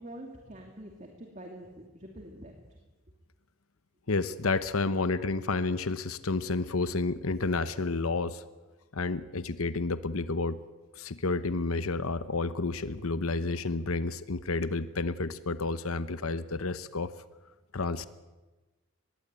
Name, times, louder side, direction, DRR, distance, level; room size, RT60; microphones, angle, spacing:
voice 1, 0.0-2.5, right 1 dB, 35° right, 2 dB, 2.7 m, -45 dB
voice 2, 4.1-8.4 8.9-10.6 11.0-17.1 17.7-18.1, left 3 dB, 80° left, 13 dB, 1.0 m, -30 dB
24.0 x 20.5 x 9.0 m, 1.2 s
head